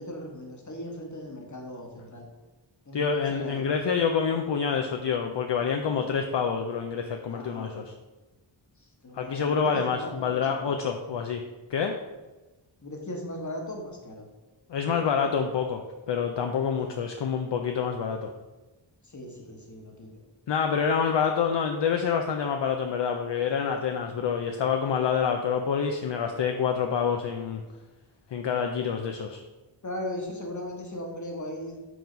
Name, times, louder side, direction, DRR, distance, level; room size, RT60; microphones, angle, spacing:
voice 1, 0.0-2.3 2.9-3.6 7.3-7.8 9.0-10.8 12.8-14.3 16.7-16.9 19.0-20.1 29.8-31.8, left 1 dB, 40° left, 1 dB, 1.3 m, -38 dB
voice 2, 2.9-7.9 9.1-11.4 11.7-12.0 14.7-18.3 20.5-27.6 28.3-29.4, left 6 dB, 65° left, 4 dB, 0.5 m, -27 dB
4.7 x 3.9 x 5.1 m, 1.2 s
wide cardioid pair, 60°, 47 cm